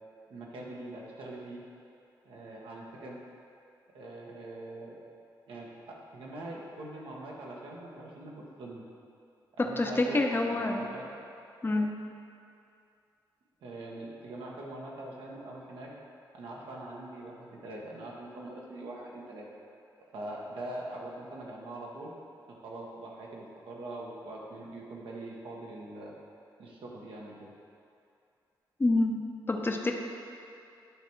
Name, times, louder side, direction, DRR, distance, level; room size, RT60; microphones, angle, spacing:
voice 1, 0.3-1.6 2.2-3.2 3.9-5.0 5.5-8.8 9.6-11.0 13.6-15.9 16.3-19.5 20.1-22.1 22.5-26.1 26.6-27.5, right 1 dB, 80° right, -3 dB, 1.2 m, -43 dB
voice 2, 9.6-10.9 11.6-11.9 28.8-29.2 29.5-29.9, left 2 dB, 25° left, 2 dB, 0.8 m, -27 dB
10.0 x 3.5 x 4.6 m, 2.5 s
supercardioid pair, 55°, 9 cm